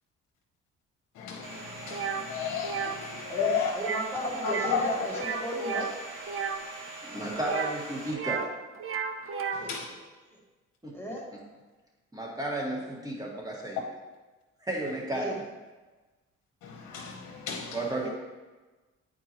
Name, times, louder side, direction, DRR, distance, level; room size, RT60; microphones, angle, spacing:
voice 1, 1.2-3.7 4.4-5.0 7.2-7.3 9.7-9.8 16.6-17.8, left 6 dB, 80° left, 0.9 m, -33 dB
Domestic sounds home sounds, 1.4-8.1, right 2 dB, 90° right, 2.2 m, -43 dB
sound 1, 1.9-2.2 2.6-3.0 3.7-4.1 4.4-4.8 5.1-6.6 7.4-8.5 8.8-9.7, right 6 dB, 45° right, 0.6 m, -33 dB
voice 2, 3.3-5.9 9.6-9.7 10.3-10.4 10.9-11.2 15.1-15.3 17.6-18.1, equal, 10° left, 1.5 m, -35 dB
voice 3, 7.1-8.5 10.8-11.0 12.1-13.9 14.6-15.4 17.7-18.1, right 1 dB, 10° right, 1.7 m, -33 dB
9.1 x 4.5 x 3.0 m
cardioid pair, 90°, 30 cm